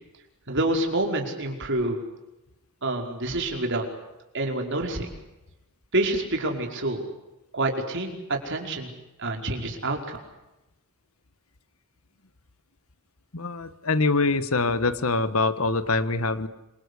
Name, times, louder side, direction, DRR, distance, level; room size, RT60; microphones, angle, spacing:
voice 1, 0.5-2.0 2.8-3.9 4.3-5.1 5.9-7.0 7.5-8.9 9.2-10.2, right 2 dB, 60° right, 3 dB, 5.2 m, -27 dB
voice 2, 13.3-16.5, left 3 dB, 85° left, 13 dB, 1.5 m, -24 dB
27.0 x 24.5 x 8.4 m, 0.98 s
head